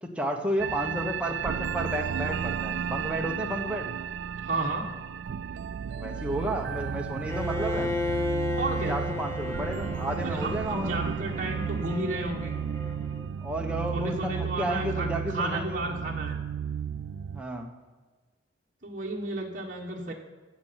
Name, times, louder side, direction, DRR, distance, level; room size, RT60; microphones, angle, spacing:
voice 1, 0.0-3.9 5.9-7.9 8.9-11.0 13.4-15.8 17.3-17.7, right 1 dB, 5° right, 1 dB, 1.2 m, -32 dB
sound 1, 0.6-17.4, right 8 dB, 75° right, 0.3 m, -33 dB
voice 2, 4.4-4.9 8.6-9.0 10.2-12.5 13.9-16.4 18.8-20.1, right 2 dB, 45° right, -2 dB, 1.5 m, -32 dB
Bowed string instrument, 7.3-13.3, left 4 dB, 15° left, 0.7 m, -34 dB
12.5 x 7.9 x 5.8 m, 1.4 s
head